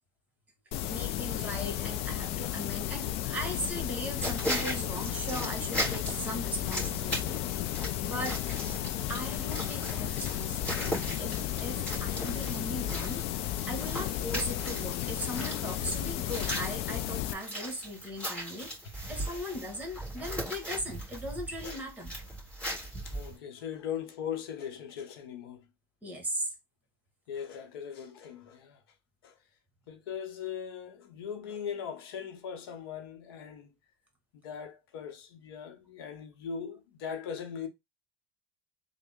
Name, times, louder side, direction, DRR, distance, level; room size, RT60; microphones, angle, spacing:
sound 1, 0.7-17.3, left 13 dB, 60° left, 0.4 m, -34 dB
voice 1, 0.9-7.4 8.0-8.4 9.1-22.1 26.0-26.5, equal, 15° right, 1.3 m, -38 dB
sound 2, 4.2-23.4, equal, 10° left, 2.0 m, -38 dB
voice 2, 18.5-19.3 21.6-21.8 23.0-25.7 27.3-28.8 29.2-29.4 29.9-33.7 34.4-37.7, left 7 dB, 85° left, 0.8 m, -40 dB
3.6 x 2.1 x 3.5 m
supercardioid pair, 105°, 12 cm